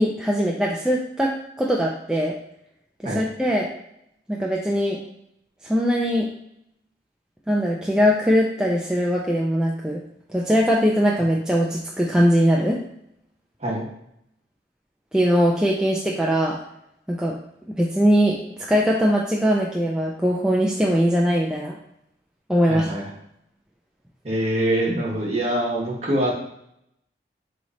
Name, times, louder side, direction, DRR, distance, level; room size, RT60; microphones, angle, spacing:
voice 1, 0.0-2.3 3.1-3.7 4.3-5.0 5.6-6.3 7.5-10.0 10.3-12.8 15.1-16.6 17.1-17.3 17.8-18.4 18.7-21.8 22.5-22.9, equal, 5° right, -3 dB, 0.3 m, -21 dB
voice 2, 22.7-23.1 24.2-26.3, right 1 dB, 35° right, -4 dB, 1.1 m, -24 dB
3.7 x 3.2 x 4.1 m, 0.76 s
head